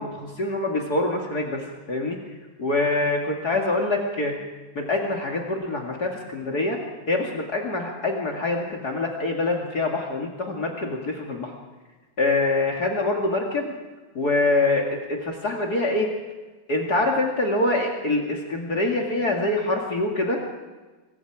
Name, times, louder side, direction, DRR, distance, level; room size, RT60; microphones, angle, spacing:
voice 1, 0.0-2.2 2.6-4.3 4.7-6.8 7.1-11.5 12.2-13.7 14.1-16.1 16.7-20.4, left 2 dB, 50° left, 0 dB, 2.9 m, -25 dB
26.0 x 23.5 x 4.9 m, 1.3 s
omnidirectional pair, 2.3 m